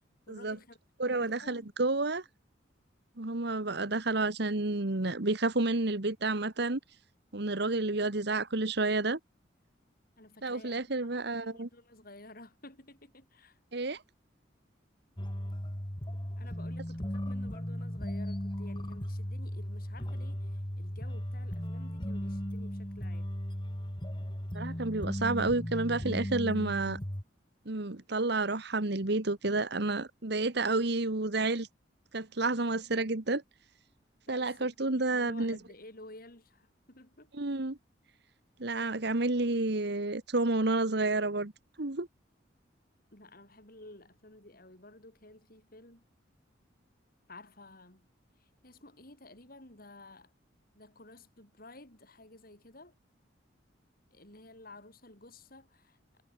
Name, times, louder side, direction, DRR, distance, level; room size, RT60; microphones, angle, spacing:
voice 1, 0.3-0.8 1.0-1.7 10.2-11.1 11.3-13.6 16.4-23.3 34.3-37.3 43.1-46.0 47.3-48.1 48.4-50.3 50.7-52.9 54.1-56.0, left 2 dB, 50° left, 7.8 m, -53 dB
voice 2, 1.0-2.2 3.2-6.8 7.3-9.2 10.4-11.7 13.7-14.0 24.5-27.0 27.6-31.7 32.1-33.4 34.3-35.6 37.3-37.8 38.6-41.5 41.8-42.1, right 2 dB, 60° right, 1.6 m, -30 dB
sound 1, 15.2-27.2, equal, 25° left, 2.7 m, -36 dB
head